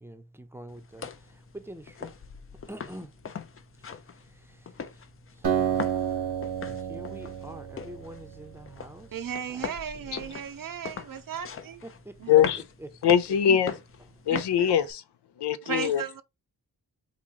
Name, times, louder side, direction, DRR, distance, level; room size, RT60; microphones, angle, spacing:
voice 1, 0.0-1.0 1.5-2.1 2.7-3.1 5.5-6.0 6.7-9.1 10.1-10.3 11.8-12.1, right 1 dB, 5° right, 0.6 m, -44 dB
sound 1, 0.7-14.9, left 6 dB, 35° left, 0.4 m, -41 dB
Acoustic guitar, 5.4-9.0, right 8 dB, 75° right, 1.0 m, -30 dB
voice 2, 9.1-11.8 12.2-12.3 14.3-14.8 15.7-16.2, right 8 dB, 55° right, 0.6 m, -36 dB
voice 3, 12.3-12.6 13.0-13.7 14.3-15.0 15.4-16.0, left 9 dB, 85° left, 0.5 m, -22 dB
3.1 x 2.6 x 3.6 m
cardioid pair, 55°, 40 cm